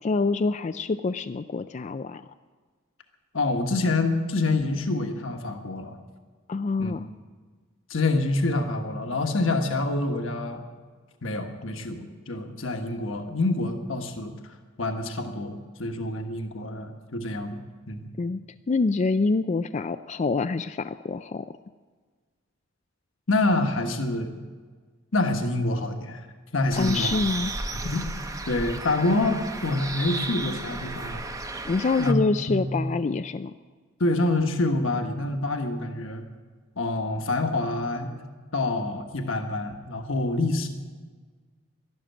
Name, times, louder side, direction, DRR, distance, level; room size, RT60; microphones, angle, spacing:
voice 1, 0.0-2.2 6.5-7.1 18.2-18.4 18.7-21.5 26.8-27.5 31.7-33.5, left 3 dB, 35° left, 10 dB, 0.4 m, -26 dB
voice 2, 3.3-6.0 6.8-6.9 7.9-10.6 11.2-17.6 17.9-18.1 23.3-24.3 25.1-26.3 26.5-27.2 27.7-28.0 28.5-31.2 32.0-32.2 32.5-32.8 34.0-36.2 36.8-38.2 38.5-40.7, left 2 dB, 65° left, 5 dB, 1.3 m, -27 dB
Bird, 26.7-32.1, right 3 dB, 15° right, 0.8 m, -34 dB
12.5 x 12.0 x 9.1 m, 1.5 s
head